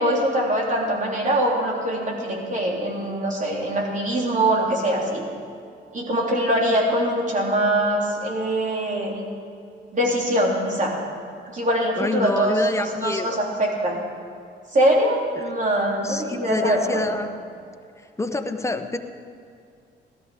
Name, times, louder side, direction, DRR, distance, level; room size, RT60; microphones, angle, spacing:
voice 1, 0.0-5.2 5.9-9.2 9.9-10.9 11.5-14.0 14.7-17.1, right 1 dB, 40° right, -2 dB, 3.6 m, -23 dB
voice 2, 12.0-13.4 16.0-17.3 18.2-19.0, left 2 dB, 15° left, 7 dB, 1.0 m, -27 dB
17.0 x 13.0 x 5.1 m, 2.3 s
cardioid pair, 90°, 20 cm